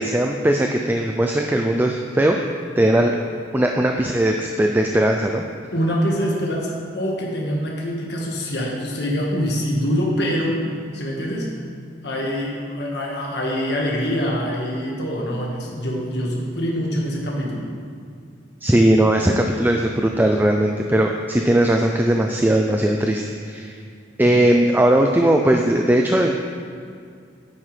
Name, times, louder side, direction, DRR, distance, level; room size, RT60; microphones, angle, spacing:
voice 1, 0.0-2.4 2.8-3.1 3.5-5.4 18.6-23.7 24.2-26.3, right 1 dB, 10° right, 2 dB, 0.4 m, -18 dB
voice 2, 5.7-10.6 10.9-11.5 12.0-17.7 24.2-24.4, equal, 65° left, -2 dB, 1.6 m, -24 dB
9.7 x 9.2 x 3.3 m, 2.2 s
head